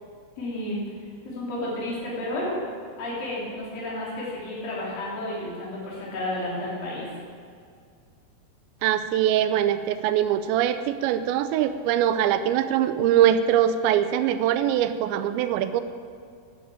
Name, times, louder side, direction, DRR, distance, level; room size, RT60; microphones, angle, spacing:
voice 1, 0.4-0.8 1.2-2.6 3.0-7.2, left 1 dB, 55° left, -7 dB, 4.7 m, -31 dB
voice 2, 8.8-15.8, right 10 dB, 85° right, 10 dB, 2.8 m, -22 dB
10.5 x 9.1 x 8.6 m, 2.2 s
omnidirectional pair, 5.3 m